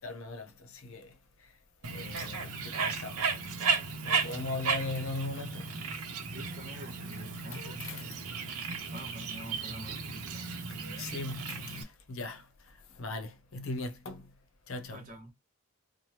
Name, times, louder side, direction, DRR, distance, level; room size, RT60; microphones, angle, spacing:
voice 1, 0.0-1.5 1.9-3.2 3.6-3.8 4.0-5.8 7.5-8.2 10.7-14.3 14.7-15.0, left 2 dB, 65° left, 0.6 m, -39 dB
Bird, 1.8-11.8, right 5 dB, 90° right, 0.7 m, -35 dB
voice 2, 6.3-8.5 8.9-10.6 14.9-15.3, right 1 dB, 35° right, 1.2 m, -48 dB
3.2 x 2.1 x 2.8 m
head